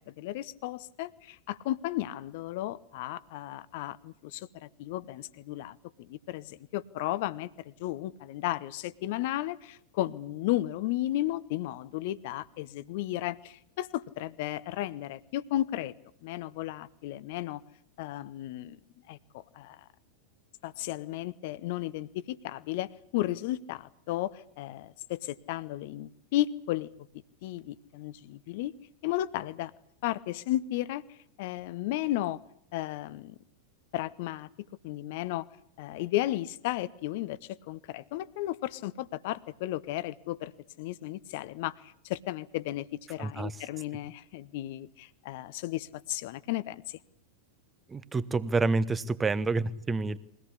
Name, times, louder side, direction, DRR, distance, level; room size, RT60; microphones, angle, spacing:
voice 1, 0.0-15.9 16.2-17.6 18.0-18.8 19.1-19.8 20.6-26.9 27.4-28.7 29.0-29.7 30.0-32.4 32.7-33.3 33.9-34.5 34.8-35.5 35.8-40.5 40.8-47.0, left 15 dB, 50° left, 18 dB, 1.0 m, -34 dB
voice 2, 43.2-43.5 47.9-50.2, right 3 dB, 15° right, 16 dB, 1.1 m, -28 dB
23.0 x 17.5 x 9.9 m, 0.69 s
figure-of-eight pair, 90°, 0 cm